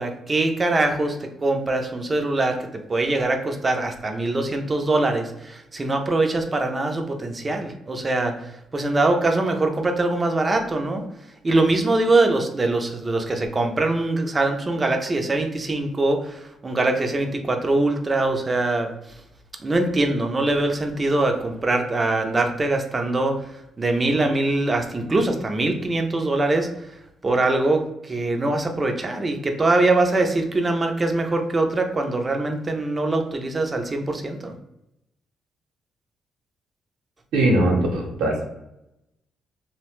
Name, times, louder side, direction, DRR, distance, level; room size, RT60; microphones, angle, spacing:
voice 1, 0.0-11.0 11.4-18.9 19.6-26.9 27.2-34.5, right 2 dB, 25° right, 4 dB, 0.5 m, -23 dB
voice 2, 37.3-38.5, right 1 dB, 85° right, -1 dB, 0.7 m, -20 dB
2.7 x 2.1 x 3.0 m, 0.85 s
cardioid pair, 90°, 0 cm